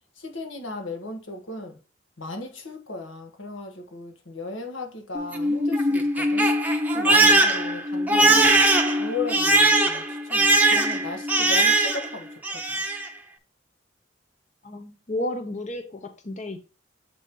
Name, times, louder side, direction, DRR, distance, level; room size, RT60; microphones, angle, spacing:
voice 1, 0.2-1.8 2.2-6.5 6.9-8.5 9.0-12.8, left 3 dB, 90° left, 1.4 m, -36 dB
Crying sobbing, 5.1-12.1 12.4-13.1, right 2 dB, 10° right, 0.7 m, -20 dB
voice 2, 14.6-16.6, left 1 dB, 40° left, 0.7 m, -32 dB
7.5 x 3.0 x 5.2 m
head